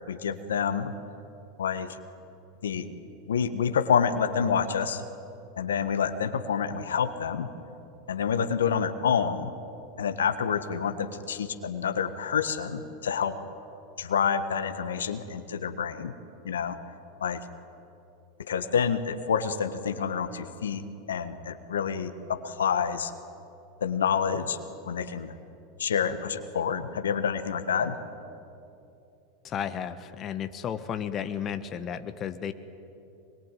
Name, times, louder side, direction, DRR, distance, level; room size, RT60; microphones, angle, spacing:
voice 1, 0.1-0.9 1.6-2.0 2.6-2.9 3.3-5.0 5.6-7.5 8.1-9.5 10.0-13.4 14.0-16.1 16.4-16.8 17.2-17.4 18.4-23.1 23.8-24.6 24.9-25.3 25.8-28.0, left 7 dB, 80° left, 9 dB, 1.4 m, -28 dB
voice 2, 29.4-32.5, left 8 dB, 35° left, 10 dB, 1.3 m, -33 dB
24.5 x 22.0 x 9.3 m, 2.8 s
hypercardioid pair, 90°, 0 cm